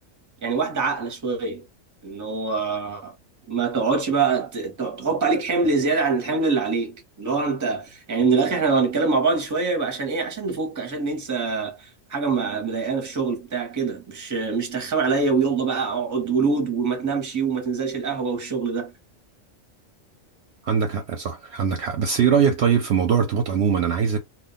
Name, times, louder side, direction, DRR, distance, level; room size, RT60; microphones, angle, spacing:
voice 1, 0.4-1.6 2.0-3.1 3.5-18.9, right 4 dB, 20° right, 0.6 m, -24 dB
voice 2, 20.6-24.2, right 7 dB, 65° right, 0.7 m, -21 dB
2.3 x 2.2 x 3.7 m
omnidirectional pair, 1.4 m